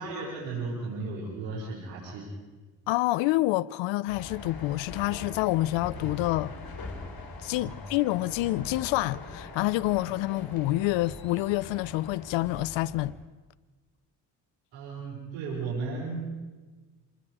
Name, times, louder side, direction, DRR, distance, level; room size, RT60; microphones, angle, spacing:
voice 1, 0.0-2.3 7.5-7.8 14.7-16.3, right 4 dB, 80° right, 5.7 m, -35 dB
voice 2, 2.9-6.5 7.4-13.1, left 17 dB, 80° left, 0.6 m, -27 dB
sound 1, 4.1-13.1, left 3 dB, 55° left, 4.2 m, -42 dB
26.5 x 20.5 x 5.0 m
supercardioid pair, 55°, 44 cm